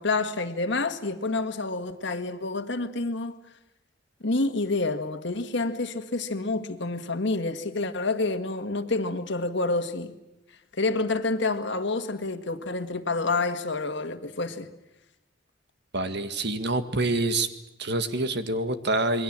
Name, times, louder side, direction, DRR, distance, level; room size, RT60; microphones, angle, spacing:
voice 1, 0.0-3.4 4.2-10.1 10.8-14.7, left 3 dB, 65° left, 1.8 m, -28 dB
voice 2, 15.9-17.5 17.8-19.2, right 2 dB, 60° right, 1.8 m, -26 dB
28.0 x 22.0 x 7.6 m
head